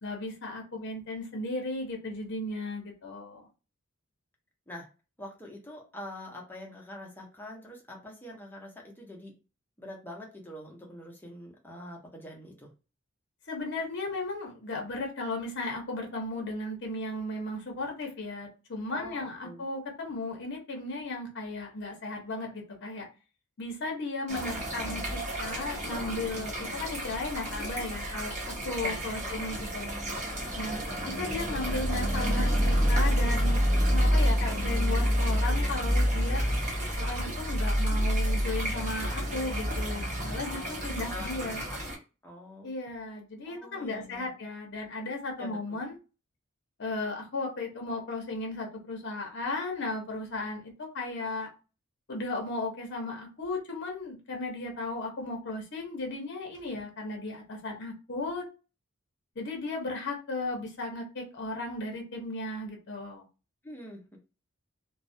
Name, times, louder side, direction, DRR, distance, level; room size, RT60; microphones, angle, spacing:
voice 1, 0.0-3.4 13.5-23.1 23.6-29.9 30.6-36.4 36.9-41.6 42.6-46.0 46.8-51.5 52.1-58.4 59.4-63.3, left 2 dB, 55° left, 2 dB, 0.7 m, -35 dB
voice 2, 5.2-9.4 9.8-12.7 18.9-19.6 28.8-29.4 40.5-40.7 41.1-41.8 42.2-42.7 43.5-44.3 45.4-45.8 63.6-64.2, left 1 dB, 10° left, -1 dB, 0.6 m, -45 dB
sound 1, 24.3-42.0, equal, 35° right, 0.8 m, -29 dB
2.3 x 2.0 x 2.6 m, 0.32 s
head